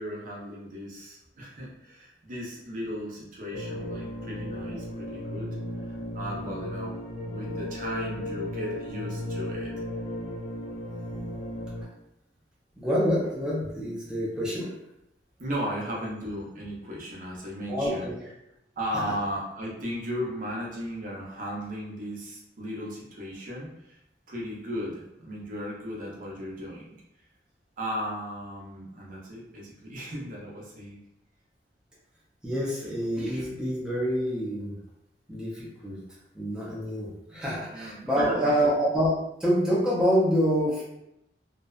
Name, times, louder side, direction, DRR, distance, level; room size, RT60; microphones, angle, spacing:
voice 1, 0.0-5.6 5.8-6.9 7.2-9.7 15.4-18.1 18.8-24.0 24.3-26.9 27.8-31.0 37.7-38.8, equal, 50° right, -4 dB, 0.6 m, -36 dB
sound 1, 3.5-11.8, left 1 dB, 45° left, 0.5 m, -35 dB
voice 2, 12.8-14.7 17.7-18.1 32.4-34.8 35.3-36.0 36.3-40.8, equal, 5° right, -7 dB, 0.5 m, -26 dB
2.6 x 2.1 x 2.4 m, 0.83 s
head